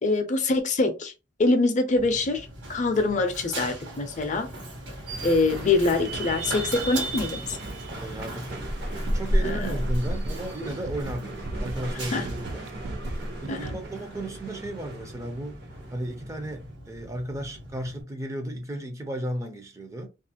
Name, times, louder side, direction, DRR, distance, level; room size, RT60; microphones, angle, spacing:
voice 1, 0.0-1.1 1.4-4.5 5.2-7.6 9.4-9.7 12.1-12.3 13.5-13.8, left 3 dB, 40° left, 0.5 m, -24 dB
Run, 2.0-18.0, equal, 75° right, 1.2 m, -34 dB
sound 1, 5.1-16.6, right 3 dB, 55° right, 0.7 m, -39 dB
voice 2, 8.0-8.5 9.1-13.1 13.4-15.6 15.9-20.1, right 1 dB, 15° right, 0.4 m, -34 dB
sound 2, 8.7-8.8 9.1-13.9, right 2 dB, 90° right, 0.3 m, -37 dB
2.4 x 2.4 x 2.7 m
head